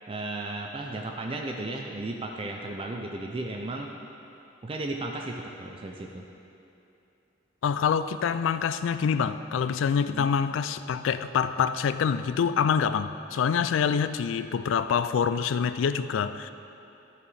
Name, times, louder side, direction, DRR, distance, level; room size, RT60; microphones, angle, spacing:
voice 1, 0.1-3.9 4.6-6.2 10.1-10.3, right 2 dB, 25° right, 2 dB, 0.4 m, -34 dB
voice 2, 7.6-16.5, left 7 dB, 75° left, 12 dB, 0.3 m, -26 dB
13.0 x 4.6 x 4.1 m, 2.8 s
head